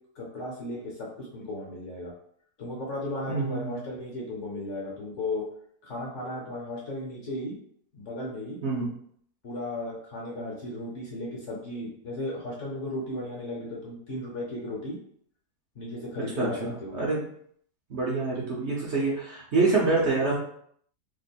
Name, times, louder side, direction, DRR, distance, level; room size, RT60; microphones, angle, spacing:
voice 1, 0.1-2.1 2.6-5.4 5.8-7.6 7.9-8.6 9.4-15.0 15.7-16.5 16.8-17.0, left 1 dB, 55° left, -3 dB, 1.1 m, -35 dB
voice 2, 3.3-3.8 8.6-8.9 16.4-17.2 17.9-20.4, right 3 dB, 50° right, -5 dB, 0.9 m, -26 dB
3.0 x 2.4 x 4.1 m, 0.64 s
omnidirectional pair, 1.8 m